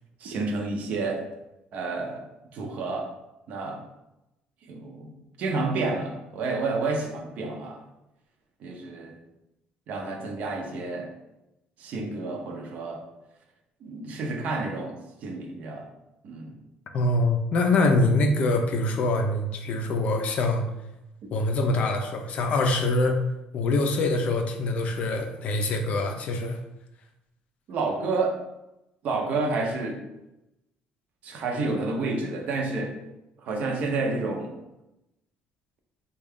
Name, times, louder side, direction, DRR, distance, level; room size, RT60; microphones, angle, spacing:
voice 1, 0.2-1.2 1.7-2.2 2.5-3.1 3.5-3.8 4.6-7.8 8.6-9.2 9.9-11.1 11.8-13.0 13.8-15.9 16.2-16.6 27.7-28.4 29.0-30.1 31.2-33.0 33.4-34.5, right 3 dB, 50° right, 2 dB, 0.6 m, -30 dB
voice 2, 16.9-20.6 21.3-23.2 23.5-26.6, left 2 dB, 45° left, 5 dB, 0.4 m, -24 dB
3.5 x 2.2 x 3.5 m, 0.92 s
cardioid pair, 165°, 3 cm